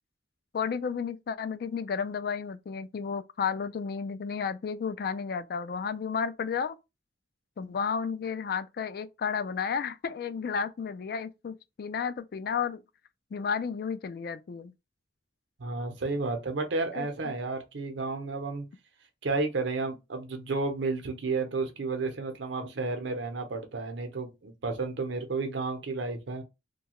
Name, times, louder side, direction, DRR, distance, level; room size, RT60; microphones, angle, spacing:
voice 1, 0.5-6.8 7.6-12.8 13.3-14.7 17.0-17.1, left 6 dB, 55° left, 0.3 m, -32 dB
voice 2, 15.6-18.7 19.2-26.4, right 3 dB, 85° right, 0.7 m, -32 dB
2.7 x 2.2 x 2.9 m
head